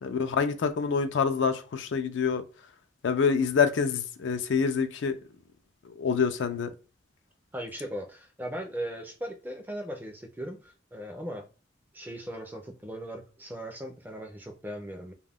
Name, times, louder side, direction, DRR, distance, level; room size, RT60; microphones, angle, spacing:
voice 1, 0.0-2.4 3.0-5.2 5.9-6.7, left 6 dB, 70° left, 0.4 m, -26 dB
voice 2, 7.5-11.5 11.9-15.1, equal, 10° right, 0.4 m, -38 dB
2.3 x 2.1 x 3.4 m
head